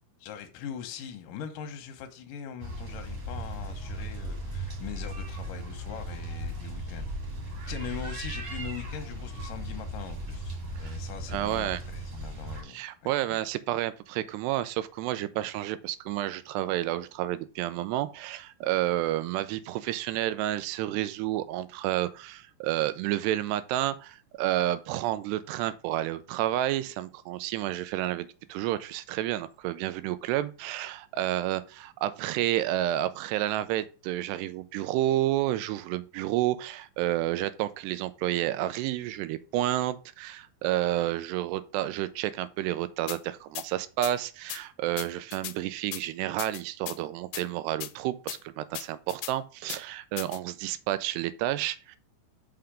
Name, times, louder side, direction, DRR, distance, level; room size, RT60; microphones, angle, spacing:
voice 1, 0.2-7.1 7.4-13.4, left 8 dB, 70° left, 2.1 m, -42 dB
sound 1, 2.6-12.6, right 1 dB, 40° right, 2.8 m, -37 dB
voice 2, 11.3-11.8 12.6-52.0, right 14 dB, 85° right, 2.6 m, -30 dB
sound 2, 43.1-43.2 43.6-43.7 44.0-44.1 44.5-44.6 45.0-45.6 45.9-46.0 46.4-47.0 47.3-47.4 47.8-47.9 48.3-48.4 48.7-49.3 49.7-49.8 50.2-50.4, left 16 dB, 90° left, 2.8 m, -37 dB
5.8 x 5.7 x 5.0 m
omnidirectional pair, 4.9 m